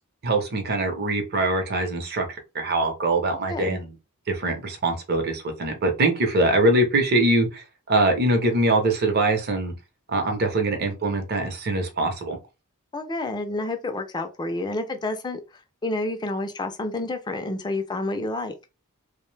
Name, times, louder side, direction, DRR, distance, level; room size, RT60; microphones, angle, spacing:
voice 1, 0.2-3.9 4.3-9.7 10.1-12.4, right 2 dB, 45° right, 0.7 m, -23 dB
voice 2, 3.5-3.8 12.9-15.4 15.8-18.5, left 2 dB, 20° left, 0.4 m, -29 dB
2.5 x 2.1 x 3.1 m
head